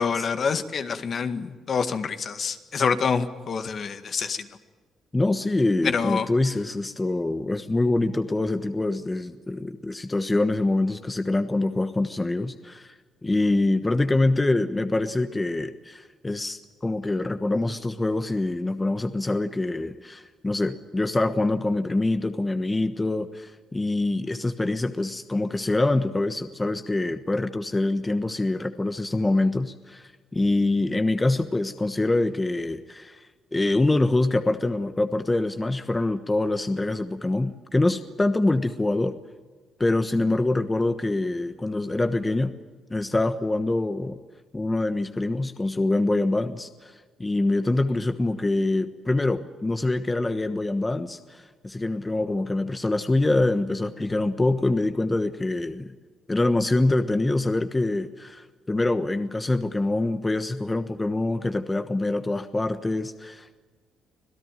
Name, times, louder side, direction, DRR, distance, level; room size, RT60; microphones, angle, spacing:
voice 1, 0.0-4.5 5.8-6.3, left 5 dB, 50° left, 9 dB, 1.9 m, -26 dB
voice 2, 5.1-12.9 13.2-39.1 39.8-42.5 42.9-44.2 44.5-46.9 47.2-55.9 56.3-63.6, left 2 dB, 20° left, 9 dB, 1.2 m, -25 dB
26.0 x 17.0 x 9.1 m, 1.4 s
cardioid pair, 90°, 0 cm